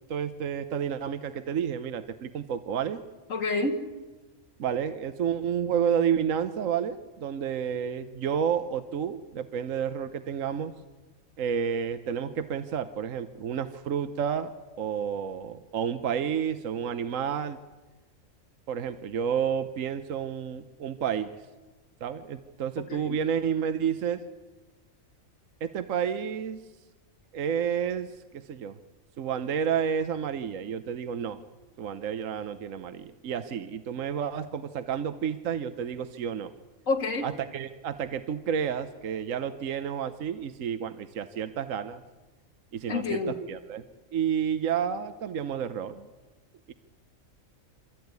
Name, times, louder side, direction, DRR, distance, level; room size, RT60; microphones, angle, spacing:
voice 1, 0.1-3.0 4.6-10.7 11.4-14.5 14.8-17.6 18.7-21.3 22.0-24.2 25.6-26.6 27.3-28.8 29.2-31.4 31.8-36.5 37.2-42.0 42.7-43.8 44.1-46.1 46.7-46.8, right 8 dB, 75° right, 11 dB, 1.3 m, -30 dB
voice 2, 3.3-3.8 22.9-23.2 36.9-37.3 42.9-43.4, left 3 dB, 70° left, 4 dB, 2.2 m, -28 dB
26.5 x 14.0 x 9.6 m, 1.2 s
omnidirectional pair, 1.4 m